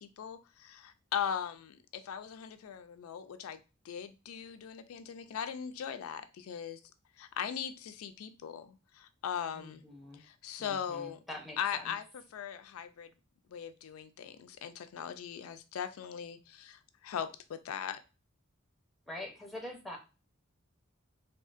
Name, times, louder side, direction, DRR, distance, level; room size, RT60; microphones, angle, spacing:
voice 1, 0.0-6.8 7.2-9.8 10.2-11.2 11.6-12.0 12.3-13.1 13.5-18.0, left 8 dB, 90° left, 0.4 m, -39 dB
voice 2, 9.5-10.2 10.6-12.0 19.1-20.0, left 1 dB, ahead, 0.7 m, -45 dB
3.7 x 2.4 x 2.4 m
head